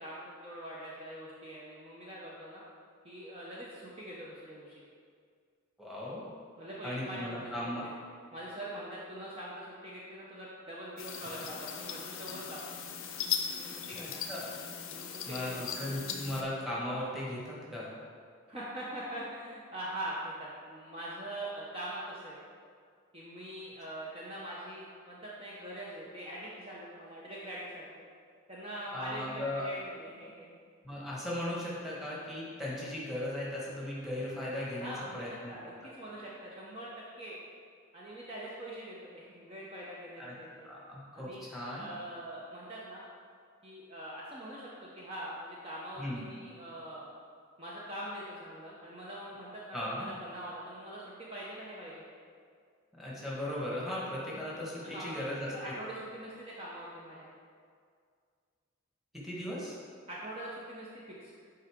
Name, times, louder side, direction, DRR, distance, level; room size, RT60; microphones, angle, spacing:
voice 1, 0.0-2.6 3.0-4.7 6.6-7.9 8.3-12.6 13.6-14.2 14.9-15.6 18.5-22.4 23.1-28.0 28.5-30.5 34.8-36.9 37.2-37.4 37.9-40.7 41.1-41.5 41.7-43.0 43.6-47.1 47.6-52.0 54.8-57.3 60.1-61.3, right 1 dB, 30° right, -6 dB, 0.7 m, -43 dB
voice 2, 5.8-6.2 6.8-7.8 13.9-14.5 15.3-17.9 28.9-29.7 30.8-35.5 40.2-40.3 40.6-41.9 46.0-46.2 49.7-50.1 53.0-55.7 59.2-59.7, left 1 dB, ahead, -7 dB, 1.4 m, -37 dB
sound 1, 11.0-16.4, left 7 dB, 75° left, 0.6 m, -38 dB
7.7 x 4.8 x 3.6 m, 2.1 s
head